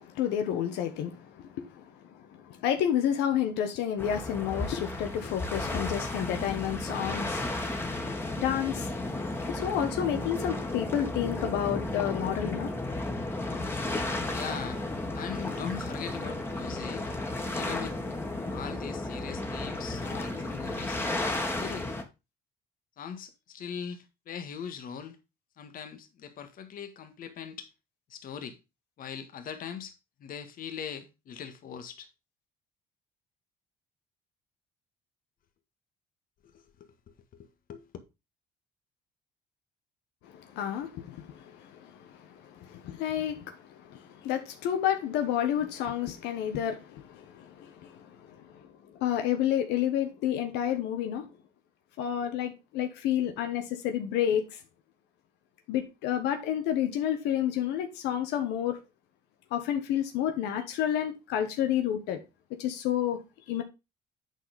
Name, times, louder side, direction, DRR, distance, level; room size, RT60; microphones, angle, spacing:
voice 1, 0.0-7.4 8.4-8.9 9.5-12.7 40.2-51.3 52.0-54.6 55.7-58.8 59.5-62.2 62.6-63.2 63.5-63.6, left 10 dB, 90° left, 1.3 m, -30 dB
sound 1, 4.0-22.0, left 2 dB, 15° left, 1.8 m, -33 dB
voice 2, 14.3-14.8 15.1-17.1 17.5-18.2 18.5-21.0 21.6-21.9 23.0-25.2 25.6-27.7 28.1-28.6 29.0-32.1 36.4-36.9 37.7-37.9, left 7 dB, 55° left, 1.7 m, -40 dB
9.0 x 4.4 x 5.2 m
cardioid pair, 110°, 17 cm